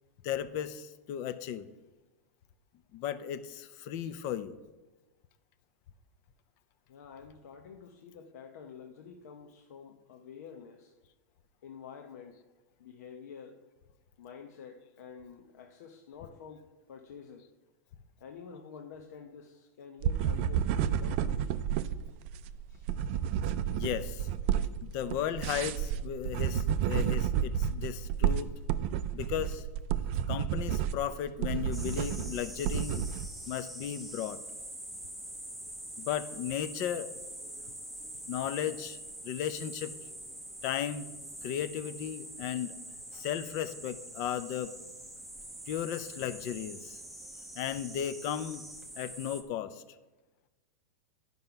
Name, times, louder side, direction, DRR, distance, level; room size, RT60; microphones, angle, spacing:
voice 1, 0.2-1.7 2.9-4.6 23.7-24.2 24.8-28.5 29.1-29.6 30.3-33.1 33.5-34.4 36.0-37.1 38.3-39.0 39.2-39.9 40.6-41.1 41.4-42.8 43.1-44.7 45.7-47.0 47.6-48.6 49.0-49.8, left 10 dB, 35° left, 13 dB, 0.5 m, -35 dB
voice 2, 6.9-10.9 11.6-12.4 12.8-13.6 14.2-17.5 18.2-21.6 22.7-22.9 24.0-24.1, left 6 dB, 75° left, 3 dB, 0.9 m, -49 dB
sound 1, 20.0-33.3, right 9 dB, 40° right, 0.4 m, -31 dB
sound 2, 31.7-49.4, right 1 dB, ahead, 0.7 m, -45 dB
11.0 x 5.4 x 5.8 m, 1.1 s
supercardioid pair, 160°, 9 cm